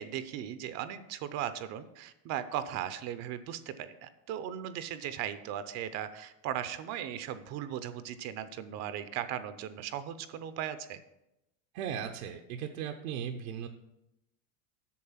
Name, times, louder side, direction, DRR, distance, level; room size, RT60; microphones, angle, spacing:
voice 1, 0.0-11.0, right 10 dB, 40° right, 12 dB, 0.6 m, -37 dB
voice 2, 11.7-13.7, right 8 dB, 75° right, 3 dB, 0.9 m, -37 dB
8.5 x 6.5 x 5.7 m, 0.88 s
supercardioid pair, 140°, 42 cm